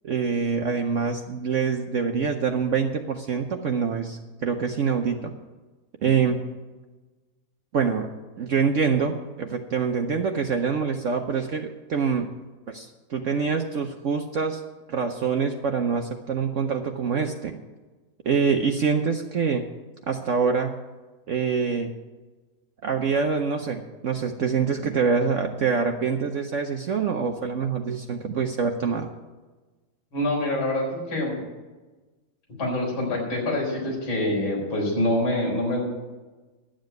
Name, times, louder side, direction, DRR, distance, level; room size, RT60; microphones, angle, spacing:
voice 1, 0.0-5.3 6.0-6.4 7.7-8.1 8.4-12.3 12.7-14.6 14.9-17.5 18.2-19.6 20.1-20.8 21.3-21.9 22.8-29.1, right 5 dB, 85° right, 4 dB, 0.6 m, -25 dB
voice 2, 30.1-31.4 32.6-35.8, left 1 dB, 70° left, -3 dB, 4.7 m, -25 dB
11.5 x 7.5 x 9.0 m, 1.2 s
omnidirectional pair, 2.3 m